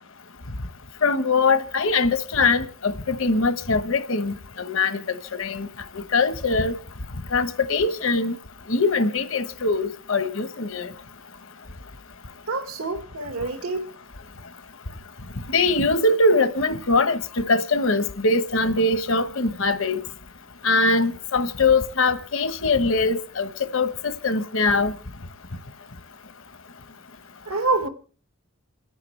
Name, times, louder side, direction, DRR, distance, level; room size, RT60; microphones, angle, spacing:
voice 1, 1.0-5.0 5.4-5.7 6.1-6.7 7.3-8.3 8.7-10.9 15.5-20.0 20.6-24.9, left 3 dB, 65° left, 1.1 m, -22 dB
voice 2, 12.5-13.8 27.5-27.9, right 3 dB, 85° right, 1.7 m, -26 dB
28.5 x 10.5 x 3.3 m
head